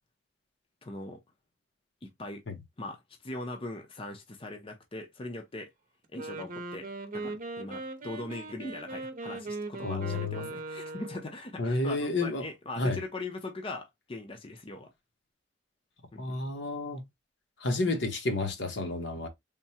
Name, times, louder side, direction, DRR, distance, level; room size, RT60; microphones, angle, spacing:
voice 1, 0.8-1.2 2.0-2.4 2.8-5.7 6.1-14.9 16.1-16.4, left 2 dB, 30° left, 0.6 m, -40 dB
Wind instrument woodwind instrument, 6.0-11.3, right 2 dB, 45° right, 0.7 m, -39 dB
voice 2, 9.8-10.5 11.6-12.5 12.8-13.0 16.2-17.0 17.6-19.3, left 2 dB, 70° left, 1.0 m, -30 dB
3.6 x 2.1 x 4.2 m
head